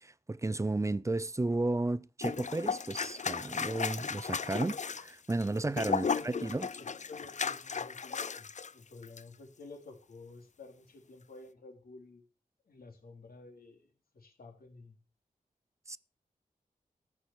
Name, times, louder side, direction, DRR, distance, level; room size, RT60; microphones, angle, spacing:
voice 1, 0.0-6.7 15.9-16.0, right 2 dB, 20° right, 0.5 m, -33 dB
sound 1, 2.2-8.7 9.0-9.2, left 5 dB, 55° left, 0.6 m, -35 dB
voice 2, 5.8-12.2 12.6-15.0, left 3 dB, 85° left, 3.3 m, -50 dB
14.5 x 6.2 x 7.1 m
wide cardioid pair, 85°, 15 cm